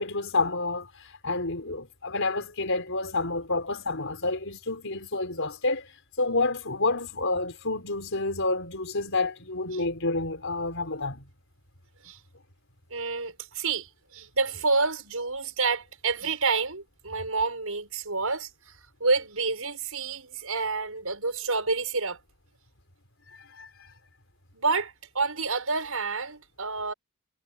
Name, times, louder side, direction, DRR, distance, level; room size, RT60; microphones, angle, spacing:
voice 1, 0.0-5.9 6.2-11.2 23.3-23.7, left 3 dB, 60° left, 5.6 m, -29 dB
voice 2, 12.9-18.5 19.0-22.2 24.5-26.9, right 4 dB, 75° right, 6.5 m, -28 dB
head